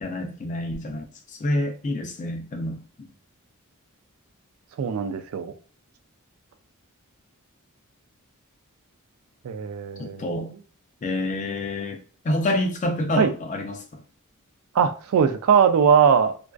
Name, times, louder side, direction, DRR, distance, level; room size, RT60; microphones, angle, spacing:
voice 1, 0.0-3.1 10.0-10.5 11.0-14.0, left 1 dB, 35° left, 0.4 m, -28 dB
voice 2, 4.8-5.5 9.4-10.3 13.2-13.3 14.7-16.3, right 7 dB, 70° right, 0.3 m, -20 dB
2.4 x 2.3 x 2.2 m
head